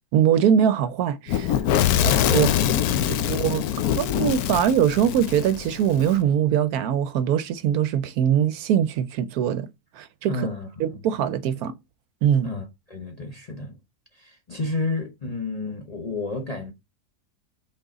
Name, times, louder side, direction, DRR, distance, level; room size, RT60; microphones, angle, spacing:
voice 1, 0.1-1.6 2.0-2.5 3.2-3.7 4.0-9.7 10.0-10.3 10.8-11.7 12.2-12.5, right 9 dB, 75° right, 1.0 m, -22 dB
Fire / Explosion, 1.3-6.1, left 10 dB, 75° left, 1.0 m, -23 dB
voice 2, 1.9-3.9 10.3-11.0 12.4-13.8 14.1-16.7, left 3 dB, 35° left, 0.7 m, -32 dB
6.0 x 4.1 x 3.9 m
omnidirectional pair, 1.7 m